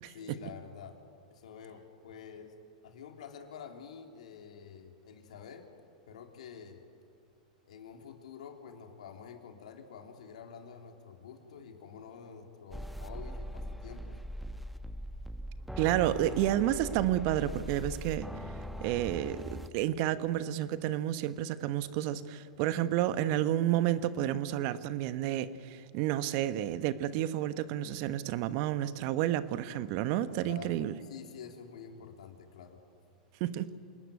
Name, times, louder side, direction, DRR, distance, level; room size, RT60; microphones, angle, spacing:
voice 1, 0.1-1.0 1.3-2.5 2.8-5.7 6.1-6.8 7.6-14.2 30.4-32.8, left 7 dB, 70° left, 4 dB, 3.3 m, -48 dB
sound 1, 12.7-19.7, equal, ahead, 1.2 m, -41 dB
voice 2, 15.8-18.2 18.8-31.0 33.4-33.7, right 12 dB, 50° right, 13 dB, 1.2 m, -30 dB
27.5 x 19.5 x 9.5 m, 2.3 s
hypercardioid pair, 95°, 4 cm